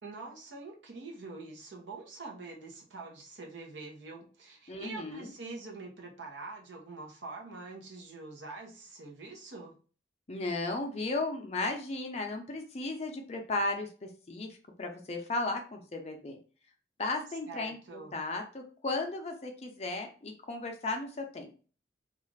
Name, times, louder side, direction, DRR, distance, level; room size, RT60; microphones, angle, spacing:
voice 1, 0.0-9.7 17.5-18.2, right 3 dB, 80° right, 1 dB, 0.8 m, -45 dB
voice 2, 4.7-5.3 10.3-14.5 14.8-16.4 17.0-21.5, left 2 dB, 35° left, 4 dB, 0.5 m, -35 dB
2.4 x 2.3 x 3.2 m, 0.38 s
head